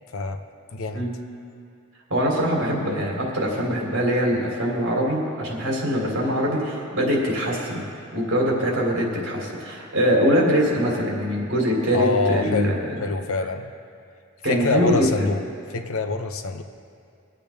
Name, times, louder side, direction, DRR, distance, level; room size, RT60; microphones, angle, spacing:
voice 1, 0.7-1.0 11.9-13.7 14.5-15.4 15.7-16.6, left 3 dB, 75° left, 7 dB, 0.7 m, -25 dB
voice 2, 2.1-7.8 8.1-12.7 14.4-15.3, equal, 60° right, -3 dB, 3.2 m, -23 dB
23.0 x 8.6 x 3.5 m, 2.4 s
head